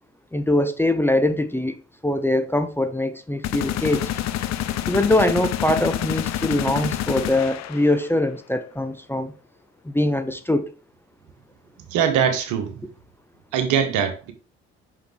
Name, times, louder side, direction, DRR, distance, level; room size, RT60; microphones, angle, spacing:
voice 1, 0.3-4.1 4.9-9.3 9.8-10.7, left 1 dB, 5° left, 0.8 m, -22 dB
sound 1, 3.4-8.2, left 12 dB, 55° left, 0.7 m, -27 dB
voice 2, 11.9-12.8 13.5-14.3, right 8 dB, 70° right, 1.5 m, -22 dB
6.0 x 5.7 x 3.5 m
hypercardioid pair, 50°, 31 cm